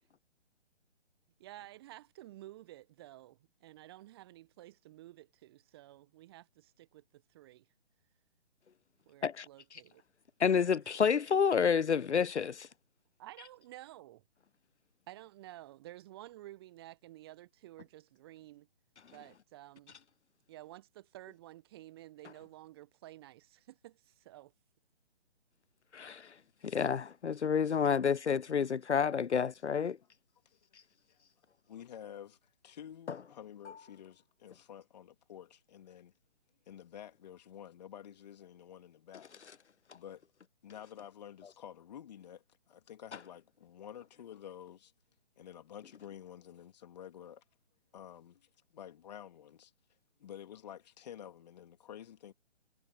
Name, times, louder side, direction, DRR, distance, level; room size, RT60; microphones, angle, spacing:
voice 1, 1.4-7.7 9.1-10.0 13.2-14.2 15.1-18.7 19.1-20.0 20.5-24.5, right 15 dB, 20° right, 1.3 m, -52 dB
voice 2, 9.2-9.8 10.4-12.7 25.9-26.3 26.6-30.0 33.1-33.2, left 6 dB, 85° left, 0.5 m, -29 dB
voice 3, 31.7-36.1 36.7-39.3 39.9-40.2 40.6-44.9 45.4-47.4 47.9-49.7 50.2-52.3, left 10 dB, 40° left, 3.3 m, -50 dB
figure-of-eight pair, 140°, 34 cm